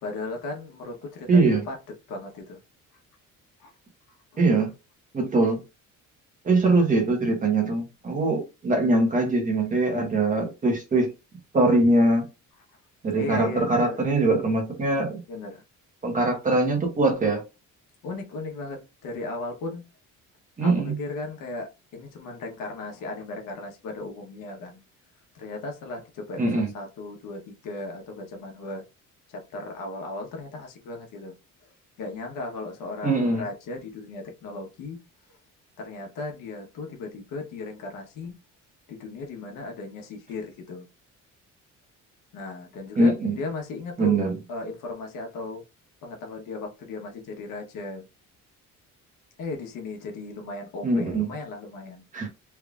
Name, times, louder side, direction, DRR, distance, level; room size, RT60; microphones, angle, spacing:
voice 1, 0.0-1.8 2.1-2.6 3.6-3.7 4.3-4.4 13.1-14.0 15.3-15.6 18.0-19.8 20.6-24.8 25.3-28.8 29.3-31.3 32.0-35.0 35.8-38.3 38.9-40.9 42.3-44.2 44.5-45.6 46.0-48.1 49.4-52.0, left 3 dB, 85° left, 1.2 m, -36 dB
voice 2, 1.3-1.6 4.4-4.7 5.1-5.6 6.4-11.1 11.5-12.2 13.0-15.2 16.0-17.4 20.6-20.9 26.4-26.7 33.0-33.4 43.0-43.3 44.0-44.3 50.8-51.3 52.1-52.3, right 2 dB, 25° right, 1.2 m, -22 dB
3.4 x 3.4 x 2.4 m
cardioid pair, 165°, 32 cm